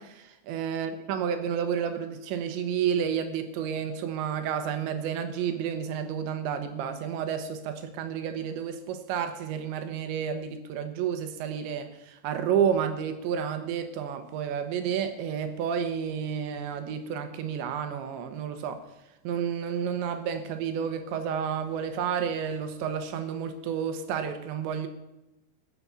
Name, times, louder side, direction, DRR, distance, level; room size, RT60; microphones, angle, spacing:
voice 1, 0.0-18.8 19.2-24.9, right 8 dB, 80° right, 8 dB, 3.1 m, -30 dB
15.5 x 7.4 x 6.8 m, 0.97 s
omnidirectional pair, 5.5 m